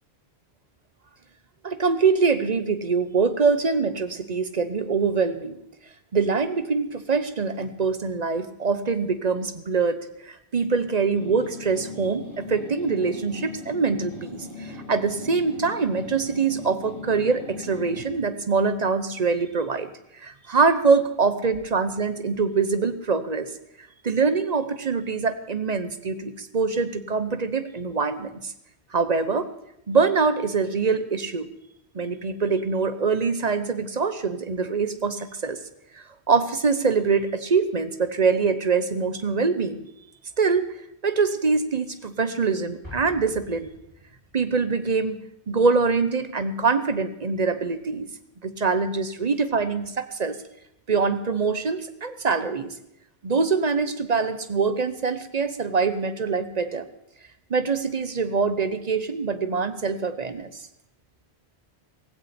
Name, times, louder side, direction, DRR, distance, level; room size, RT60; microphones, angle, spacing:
voice 1, 1.6-5.6 6.1-23.5 24.0-28.5 28.9-29.5 29.9-31.5 31.9-35.6 36.3-39.9 40.4-40.7 41.0-43.7 44.3-45.2 45.5-48.1 48.4-50.4 50.9-52.7 53.2-56.9 57.5-60.5, right 4 dB, 40° right, 11 dB, 1.0 m, -24 dB
sound 1, 11.1-18.2, left 2 dB, 50° left, 6.3 m, -39 dB
Explosion, 42.8-44.6, left 1 dB, 25° right, 6.0 m, -44 dB
16.0 x 16.0 x 4.3 m, 0.79 s
omnidirectional pair, 1.1 m